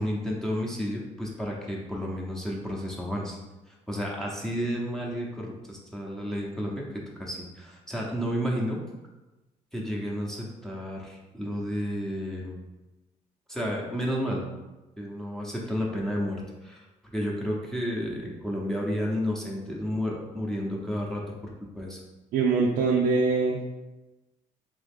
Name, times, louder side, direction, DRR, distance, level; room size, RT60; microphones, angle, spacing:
voice 1, 0.0-3.4 3.7-8.8 9.7-12.6 13.5-14.5 15.0-16.8 17.1-22.0, equal, 5° left, -3 dB, 0.8 m, -31 dB
voice 2, 22.3-23.7, right 4 dB, 85° right, -3 dB, 0.5 m, -23 dB
3.6 x 2.9 x 3.6 m, 1.1 s
cardioid pair, 90°, 14 cm